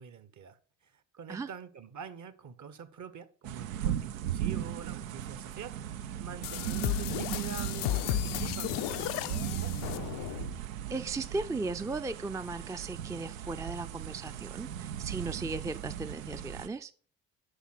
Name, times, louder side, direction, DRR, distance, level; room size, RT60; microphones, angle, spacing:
voice 1, 0.0-9.7, right 7 dB, 45° right, 1.0 m, -46 dB
sound 1, 3.4-16.7, right 10 dB, 85° right, 0.5 m, -37 dB
sound 2, 6.4-10.6, left 16 dB, 60° left, 0.5 m, -34 dB
voice 2, 10.9-16.9, right 3 dB, 10° right, 0.4 m, -36 dB
8.3 x 5.8 x 6.0 m
figure-of-eight pair, 45°, 40 cm